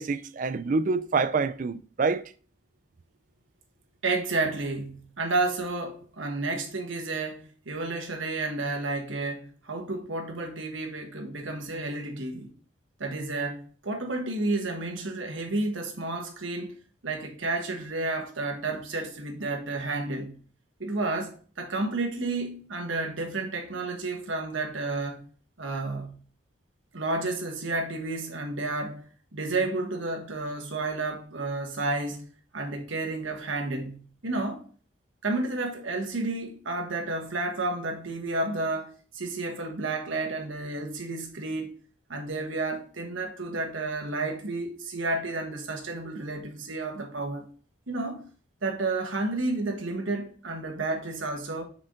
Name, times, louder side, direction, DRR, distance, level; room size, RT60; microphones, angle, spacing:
voice 1, 0.0-2.2, right 4 dB, 40° right, 0.3 m, -26 dB
voice 2, 4.0-12.5 13.0-16.7 17.0-20.3 20.8-25.2 25.6-26.2 26.9-29.1 29.3-32.3 32.5-34.6 35.2-41.7 42.1-47.5 47.9-48.3 48.6-51.6, right 2 dB, 75° right, 1.3 m, -31 dB
6.3 x 4.6 x 3.6 m
head